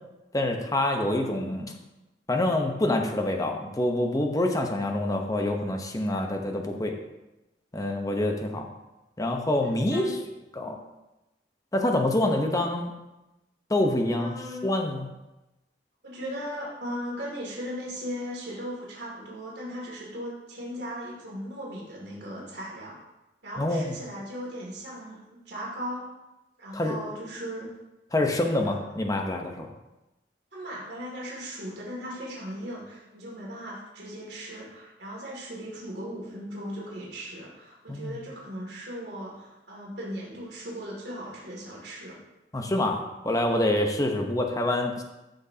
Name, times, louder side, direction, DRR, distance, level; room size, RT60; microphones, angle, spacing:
voice 1, 0.3-1.7 2.3-6.9 7.7-8.7 9.2-10.2 10.5-10.8 11.7-13.0 13.7-14.4 14.6-15.1 23.6-23.9 26.7-27.0 28.1-29.7 37.9-38.2 42.5-45.0, left 1 dB, 20° left, 3 dB, 0.9 m, -26 dB
voice 2, 9.7-10.2 10.6-10.7 14.2-14.7 16.0-23.0 23.4-26.1 26.6-27.7 28.6-28.9 30.5-42.2, equal, 75° right, -4 dB, 2.5 m, -38 dB
13.0 x 6.4 x 2.8 m, 1.0 s
head